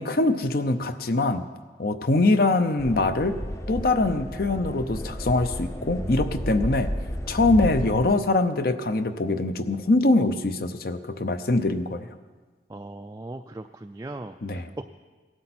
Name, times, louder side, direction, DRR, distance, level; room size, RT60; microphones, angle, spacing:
voice 1, 0.0-1.5 1.8-3.4 3.7-6.9 7.3-12.1 14.4-14.7, left 2 dB, 55° left, 10 dB, 0.8 m, -23 dB
sound 1, 2.8-8.1, equal, 15° left, 0.7 m, -32 dB
voice 2, 12.7-14.8, right 2 dB, 20° right, 6 dB, 0.3 m, -38 dB
17.5 x 12.0 x 4.3 m, 1.4 s
head